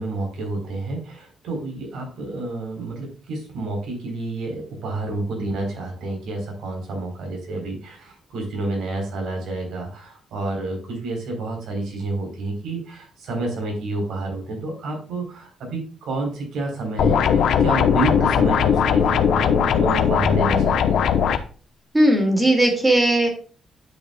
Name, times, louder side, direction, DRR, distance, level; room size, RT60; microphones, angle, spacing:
voice 1, 0.0-21.1, right 2 dB, 80° right, 2 dB, 3.8 m, -29 dB
sound 1, 17.0-21.4, left 7 dB, 70° left, 0.8 m, -19 dB
voice 2, 21.9-23.3, right 1 dB, 15° right, 3 dB, 2.4 m, -17 dB
10.5 x 6.6 x 2.3 m, 0.38 s
cardioid pair, 130°, 0 cm